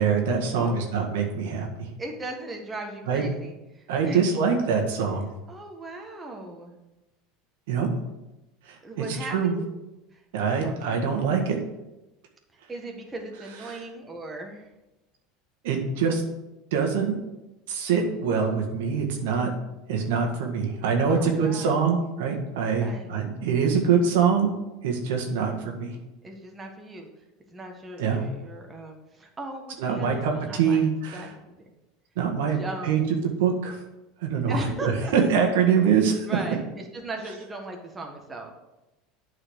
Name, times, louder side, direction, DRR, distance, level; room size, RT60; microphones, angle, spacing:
voice 1, 0.0-1.9 3.1-3.2 3.9-5.3 7.7-7.9 8.7-8.8 9.1-9.6 10.3-11.6 13.7-13.8 15.6-16.2 16.7-17.1 17.7-19.5 19.9-24.5 24.8-26.0 28.0-28.2 29.8-31.3 32.1-33.8 34.2-36.3, right 6 dB, 80° right, 2 dB, 1.6 m, -24 dB
voice 2, 0.6-1.0 2.0-4.2 5.5-6.7 8.8-9.6 10.1-10.2 10.6-11.2 12.7-14.7 21.1-21.8 22.7-23.1 26.2-27.1 27.5-30.8 31.1-31.7 32.5-33.1 34.5-35.1 36.3-38.5, right 2 dB, 20° right, 1 dB, 1.6 m, -38 dB
8.6 x 4.8 x 6.4 m, 0.99 s
supercardioid pair, 115°, 0 cm